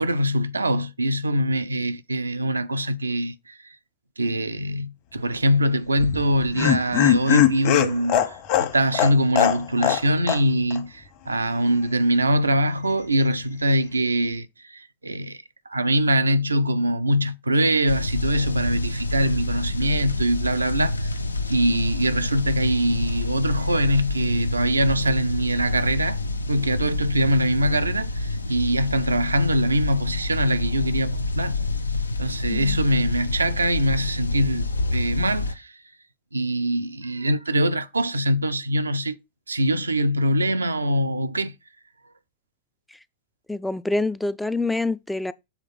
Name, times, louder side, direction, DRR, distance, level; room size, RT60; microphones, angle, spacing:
voice 1, 0.0-3.8 4.2-21.2 21.5-26.2 26.5-31.6 32.2-35.8 36.3-39.1 39.5-41.5, right 1 dB, 80° right, 0.5 m, -23 dB
Laughter, 6.0-10.0 10.3-10.4 10.7-10.8, left 11 dB, 45° left, 1.2 m, -20 dB
sound 1, 17.9-35.5, left 2 dB, 80° left, 0.5 m, -27 dB
voice 2, 43.5-45.3, left 2 dB, 5° left, 0.4 m, -26 dB
7.3 x 3.6 x 5.2 m
figure-of-eight pair, 90°, 0 cm